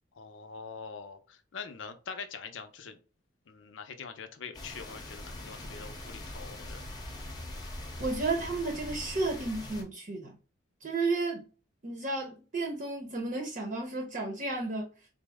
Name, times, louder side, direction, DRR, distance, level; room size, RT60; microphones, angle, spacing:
voice 1, 0.1-3.0 3.5-6.8, left 5 dB, 70° left, 0.6 m, -44 dB
sound 1, 4.5-9.8, left 1 dB, 20° left, 0.7 m, -42 dB
voice 2, 8.0-10.4 10.8-11.5 11.8-14.9, right 3 dB, 45° right, 0.8 m, -32 dB
4.0 x 2.0 x 3.5 m
head